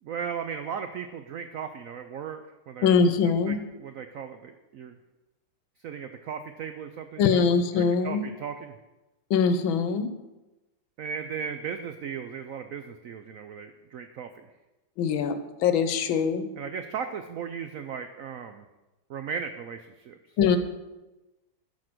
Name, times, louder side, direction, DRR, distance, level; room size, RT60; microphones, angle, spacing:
voice 1, 0.0-2.4 2.7-2.9 3.2-4.9 5.8-7.5 7.8-8.8 11.0-14.5 16.6-18.6 19.1-20.2, right 7 dB, 85° right, 8 dB, 0.7 m, -36 dB
voice 2, 2.8-3.6 7.2-8.2 9.3-10.1 15.0-16.5 20.4-20.6, left 6 dB, 85° left, 10 dB, 1.6 m, -23 dB
12.0 x 5.0 x 6.0 m, 1.1 s
omnidirectional pair, 2.1 m